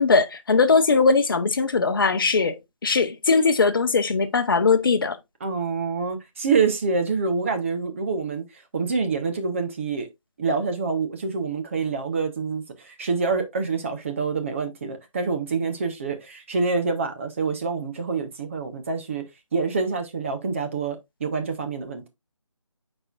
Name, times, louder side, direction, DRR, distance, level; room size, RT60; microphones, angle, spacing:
voice 1, 0.0-5.2, left 4 dB, 45° left, 0.9 m, -20 dB
voice 2, 5.4-8.4 8.7-10.1 10.4-19.3 19.5-22.0, right 4 dB, 25° right, 1.0 m, -26 dB
8.9 x 4.4 x 2.4 m
figure-of-eight pair, 165°, 17 cm